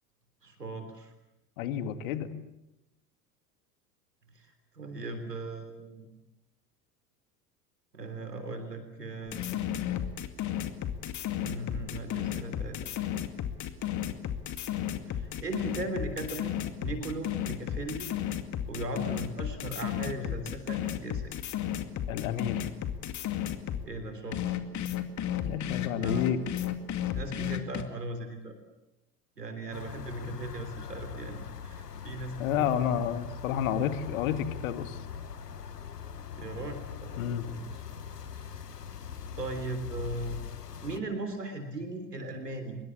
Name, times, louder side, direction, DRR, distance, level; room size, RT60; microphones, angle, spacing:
voice 1, 0.4-1.1 4.3-4.5 4.7-6.1 7.9-9.5 11.4-13.2 15.1-18.1 18.7-21.4 23.8-24.6 26.0-26.3 27.1-28.6 29.4-33.0 36.4-37.8 38.3-38.5 39.3-40.4 40.8-42.8, right 2 dB, 85° right, 8 dB, 3.6 m, -38 dB
voice 2, 1.6-2.3 20.2-20.3 22.1-22.7 25.4-26.4 32.4-35.0 37.2-37.4, left 9 dB, 60° left, 10 dB, 2.3 m, -30 dB
sound 1, 9.3-23.9 24.3-27.8, left 11 dB, 35° left, 2.4 m, -33 dB
sound 2, 29.7-41.0, left 8 dB, 85° left, 1.3 m, -42 dB
25.5 x 23.0 x 8.5 m, 0.91 s
figure-of-eight pair, 75°, 47 cm